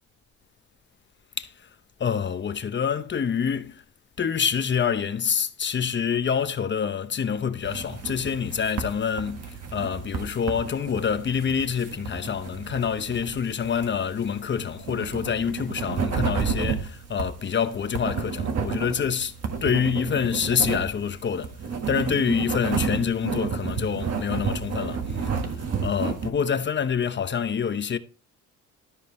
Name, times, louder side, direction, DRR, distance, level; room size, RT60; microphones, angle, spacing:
voice 1, 2.0-3.8 4.2-19.3 19.6-21.6 21.9-28.0, left 7 dB, 40° left, 0.9 m, -27 dB
sound 1, 7.6-26.3, right 6 dB, 55° right, 1.7 m, -31 dB
13.0 x 5.1 x 4.2 m
cardioid pair, 90°, 30 cm